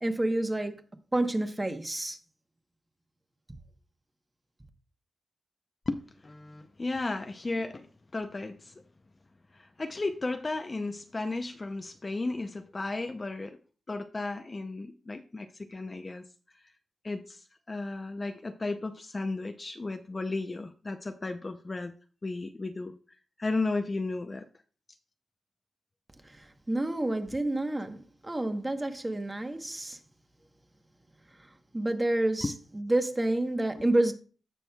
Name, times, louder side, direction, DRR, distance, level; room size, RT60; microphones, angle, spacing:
voice 1, 0.0-0.8 1.1-2.2 26.3-26.4 26.7-30.0 31.7-34.1, right 1 dB, 15° right, 0.9 m, -29 dB
voice 2, 5.9-8.7 9.5-13.6 13.9-16.2 17.0-21.9 22.2-22.9 23.4-24.5 32.4-32.5, left 3 dB, 25° left, 0.5 m, -34 dB
16.0 x 6.2 x 2.2 m
wide cardioid pair, 160°, 0 cm